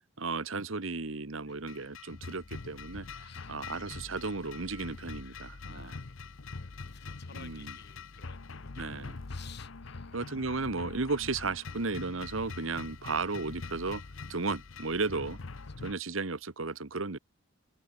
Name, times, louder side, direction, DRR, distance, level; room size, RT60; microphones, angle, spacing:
voice 1, 0.2-3.1 3.5-5.9 7.3-7.7 8.8-9.2 10.1-14.0 14.3-15.4 15.8-17.2, right 3 dB, 70° right, 1.3 m, -34 dB
sound 1, 1.7-15.9, left 4 dB, 70° left, 0.9 m, -44 dB
voice 2, 3.1-3.7 5.2-10.2 15.7-15.8, left 7 dB, 50° left, 4.5 m, -56 dB
open air
head